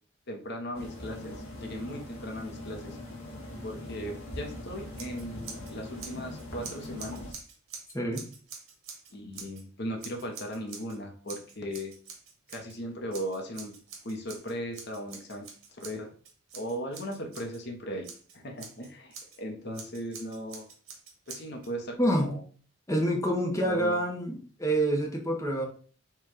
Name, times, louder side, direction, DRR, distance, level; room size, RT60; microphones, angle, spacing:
voice 1, 0.3-3.0 3.6-7.4 9.1-11.9 12.5-13.7 14.0-16.1 16.5-18.1 18.3-20.7 21.3-22.4 23.6-24.0, equal, 55° left, 3 dB, 0.9 m, -38 dB
sound 1, 0.7-7.3, left 1 dB, 90° left, 1.3 m, -41 dB
Scissors, 5.0-5.7 6.0-9.6 10.0-11.0 11.3-12.8 13.1-17.6 18.0-19.4 19.7-21.7, right 5 dB, 90° right, 1.3 m, -46 dB
voice 2, 22.0-22.4 22.9-25.7, right 1 dB, 15° left, 0 dB, 0.8 m, -27 dB
4.6 x 2.4 x 4.8 m, 0.41 s
head